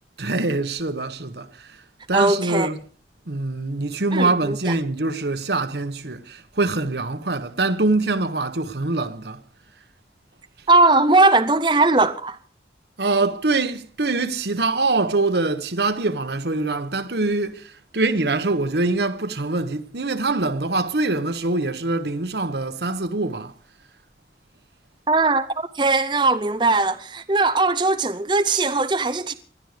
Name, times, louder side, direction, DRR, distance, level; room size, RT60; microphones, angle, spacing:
voice 1, 0.2-1.8 2.1-2.8 3.3-9.4 13.0-23.5, right 2 dB, 70° right, 1.2 m, -24 dB
voice 2, 2.1-2.7 4.1-4.7 10.7-12.4 25.1-29.3, right 3 dB, 25° right, 0.6 m, -19 dB
20.0 x 12.5 x 5.0 m
head